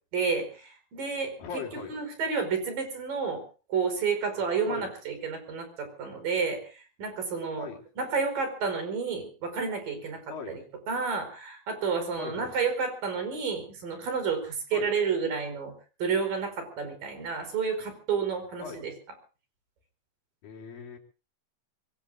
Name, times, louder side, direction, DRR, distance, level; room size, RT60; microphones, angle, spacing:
voice 1, 0.1-1.6 1.9-3.4 3.7-7.7 8.0-10.2 10.5-10.6 10.9-15.7 16.0-18.9, right 5 dB, 70° right, 7 dB, 6.5 m, -30 dB
voice 2, 1.4-1.9 4.7-4.9 7.6-7.8 10.3-10.6 12.2-12.6 14.7-14.9 18.6-18.8 20.4-21.0, left 6 dB, 75° left, 0 dB, 5.0 m, -40 dB
24.0 x 23.5 x 2.6 m, 0.37 s
omnidirectional pair, 4.1 m